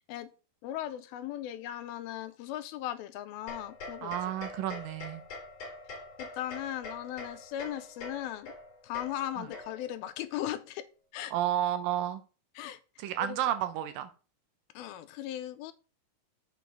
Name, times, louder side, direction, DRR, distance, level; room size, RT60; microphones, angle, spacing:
voice 1, 0.6-4.1 4.6-4.8 6.2-8.5 8.8-10.9 11.1-11.3 12.6-12.8 13.3-13.4 14.8-15.7, left 12 dB, 85° left, 2.5 m, -38 dB
sound 1, 3.5-10.0, left 3 dB, 50° left, 2.7 m, -45 dB
voice 2, 4.0-5.2 9.4-9.5 11.3-12.2 13.0-14.1, right 11 dB, 75° right, 2.2 m, -31 dB
7.0 x 5.0 x 5.9 m
omnidirectional pair, 4.4 m